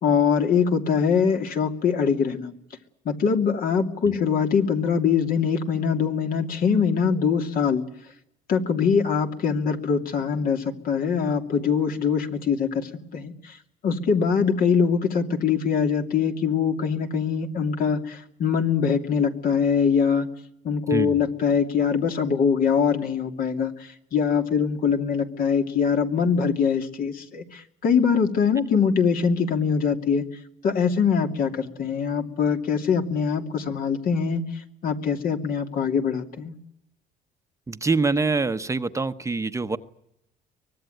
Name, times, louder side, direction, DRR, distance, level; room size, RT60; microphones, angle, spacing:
voice 1, 0.0-2.5 3.0-7.8 8.5-13.6 13.8-20.3 20.6-30.3 30.6-34.4 34.8-36.5, left 6 dB, 60° left, 5 dB, 2.7 m, -23 dB
voice 2, 37.7-39.8, right 3 dB, 15° right, 9 dB, 1.0 m, -25 dB
24.0 x 19.0 x 9.2 m, 0.80 s
cardioid pair, 110°, 17 cm